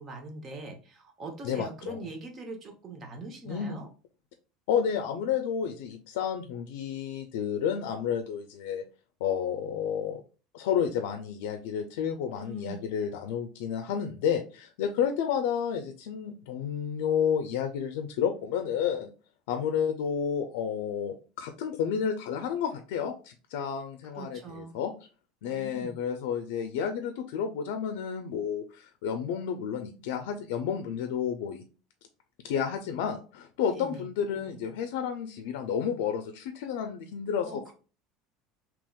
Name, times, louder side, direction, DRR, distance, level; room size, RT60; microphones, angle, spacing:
voice 1, 0.0-3.9 12.3-12.8 24.1-24.8 25.4-25.9 33.7-34.1 37.4-37.7, right 2 dB, 25° right, 4 dB, 0.8 m, -42 dB
voice 2, 1.4-2.0 3.5-3.8 4.7-8.8 9.2-10.2 10.5-19.1 19.5-24.9 25.4-31.6 32.4-37.6, left 8 dB, 85° left, 6 dB, 0.4 m, -31 dB
3.6 x 2.9 x 2.3 m, 0.35 s
cardioid pair, 160°, 0 cm